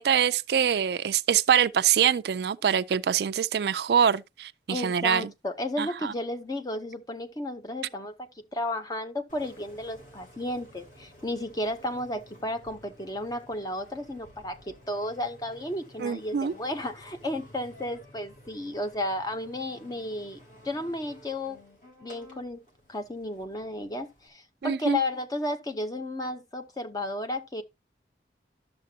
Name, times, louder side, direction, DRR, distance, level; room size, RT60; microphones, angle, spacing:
voice 1, 0.0-5.3 5.8-6.1 16.0-16.5 24.6-25.0, right 8 dB, 65° right, 0.4 m, -24 dB
voice 2, 4.7-20.4 20.6-21.6 22.0-22.6 22.9-27.6, left 1 dB, 20° left, 0.7 m, -33 dB
Engine, 9.3-24.3, left 1 dB, 45° left, 2.7 m, -53 dB
11.5 x 6.7 x 2.7 m
head